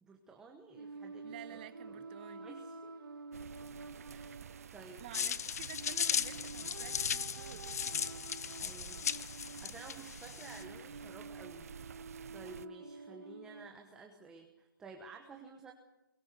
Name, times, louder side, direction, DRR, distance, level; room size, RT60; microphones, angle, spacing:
voice 1, 0.0-2.1 2.4-3.0 4.0-5.3 8.6-11.7 12.3-15.7, right 3 dB, 5° right, 1.1 m, -53 dB
sound 1, 0.7-13.7, right 3 dB, 85° right, 1.9 m, -50 dB
voice 2, 1.2-2.5 5.0-8.0, right 12 dB, 25° right, 1.2 m, -51 dB
sound 2, 3.3-12.7, right 8 dB, 45° right, 0.6 m, -51 dB
sound 3, 5.1-10.6, left 8 dB, 45° left, 0.7 m, -37 dB
22.5 x 16.5 x 8.1 m
hypercardioid pair, 160°, 12 cm